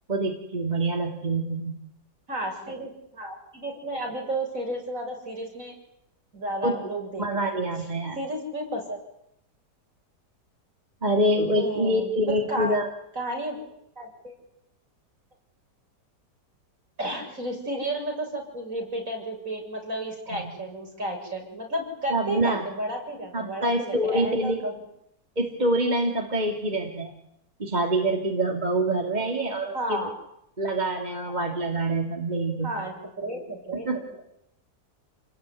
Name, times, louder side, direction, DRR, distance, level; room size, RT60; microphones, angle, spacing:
voice 1, 0.1-1.8 6.6-6.8 7.2-8.2 11.0-12.9 20.3-20.5 22.1-22.7 23.3-24.7 25.4-27.1 27.6-30.1 30.6-32.7 33.7-34.0, right 1 dB, 25° right, 2 dB, 2.9 m, -26 dB
voice 2, 2.3-5.7 6.3-7.6 8.2-9.0 11.5-12.7 13.2-13.6 14.0-14.3 17.0-24.8 29.7-30.1 32.6-33.9, right 1 dB, 50° right, 1 dB, 8.0 m, -32 dB
30.0 x 20.0 x 9.9 m, 0.77 s
omnidirectional pair, 1.8 m